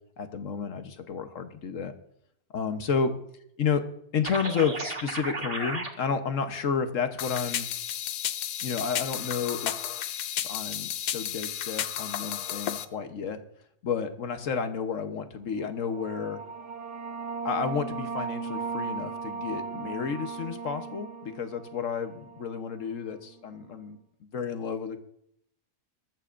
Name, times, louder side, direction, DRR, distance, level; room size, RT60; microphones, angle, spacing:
voice 1, 0.2-1.9 2.5-3.1 3.6-3.8 4.1-7.7 8.6-9.9 10.4-13.4 13.8-16.4 17.4-24.0 24.3-25.0, left 6 dB, 55° left, 8 dB, 1.3 m, -31 dB
sound 1, 4.2-5.9, right 3 dB, 40° right, 1.7 m, -34 dB
sound 2, 7.2-12.8, left 10 dB, 85° left, 1.3 m, -33 dB
sound 3, 15.7-22.9, right 5 dB, 55° right, 1.1 m, -37 dB
20.5 x 13.5 x 2.5 m, 0.74 s
omnidirectional pair, 1.7 m